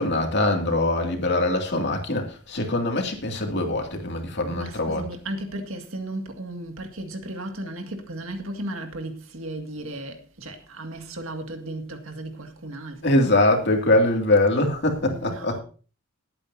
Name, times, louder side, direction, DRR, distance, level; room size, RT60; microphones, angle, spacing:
voice 1, 0.0-5.1 13.0-15.6, left 2 dB, 55° left, 2.4 m, -23 dB
voice 2, 4.5-13.3 15.1-15.6, right 1 dB, 70° right, 2.0 m, -35 dB
20.0 x 8.7 x 2.7 m
head